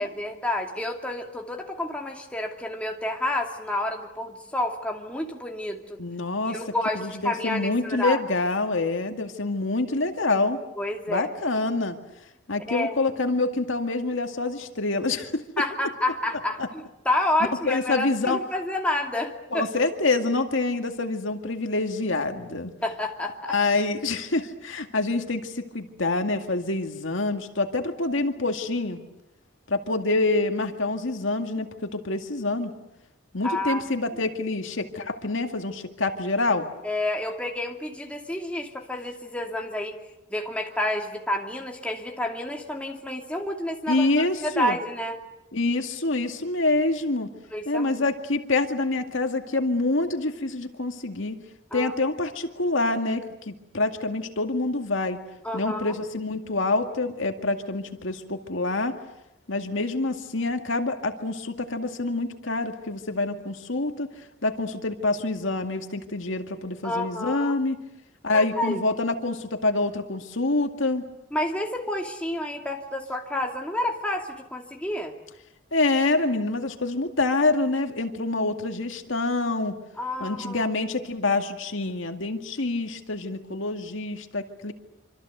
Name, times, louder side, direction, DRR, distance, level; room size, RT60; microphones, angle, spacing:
voice 1, 0.0-6.0 6.4-8.2 10.8-11.3 12.7-13.0 15.6-19.7 22.8-23.6 33.4-33.8 36.8-40.0 40.3-45.2 47.5-48.0 51.7-51.9 55.4-56.0 66.8-67.6 68.3-68.8 71.3-75.1 80.0-80.7, left 1 dB, 5° left, 1 dB, 2.6 m, -29 dB
voice 2, 6.0-6.6 7.0-10.6 11.1-12.0 12.5-15.4 16.6-16.7 17.6-18.4 19.5-22.7 23.5-29.0 29.7-32.7 33.3-36.7 43.9-44.8 45.5-47.3 47.7-51.4 51.7-55.2 55.5-59.0 59.5-64.1 64.4-67.8 68.2-71.1 75.7-79.7 80.2-84.7, left 2 dB, 70° left, 5 dB, 2.1 m, -26 dB
26.5 x 25.5 x 8.1 m, 0.89 s
head